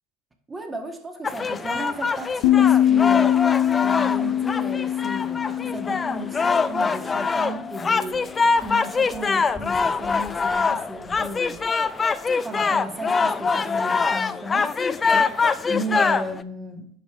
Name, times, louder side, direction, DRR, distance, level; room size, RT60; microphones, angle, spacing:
voice 1, 0.5-3.4 3.8-8.2 8.6-11.6 12.4-14.7 15.1-16.9, right 1 dB, 15° right, 4 dB, 1.8 m, -34 dB
sound 1, 1.2-16.4, left 4 dB, 20° left, 0.5 m, -24 dB
sound 2, 2.4-7.6, left 11 dB, 60° left, 0.7 m, -22 dB
10.5 x 4.6 x 5.0 m, 0.63 s
hypercardioid pair, 85°, 0 cm